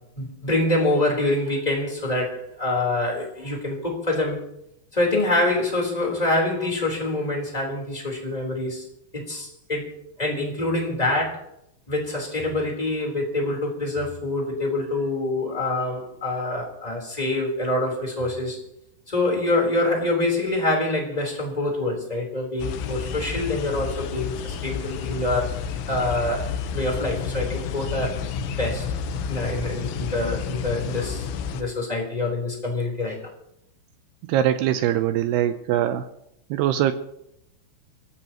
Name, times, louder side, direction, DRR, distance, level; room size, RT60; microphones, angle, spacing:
voice 1, 0.2-4.4 4.9-8.8 9.1-9.9 10.2-11.4 11.9-18.6 19.1-25.5 25.9-28.2 28.6-28.8 29.3-33.2, left 2 dB, 10° left, 0 dB, 3.3 m, -25 dB
sound 1, 22.6-31.6, left 6 dB, 85° left, 3.6 m, -30 dB
voice 2, 34.3-36.1 36.5-36.9, right 11 dB, 80° right, 9 dB, 2.4 m, -22 dB
29.0 x 15.0 x 3.0 m, 0.79 s
omnidirectional pair, 5.4 m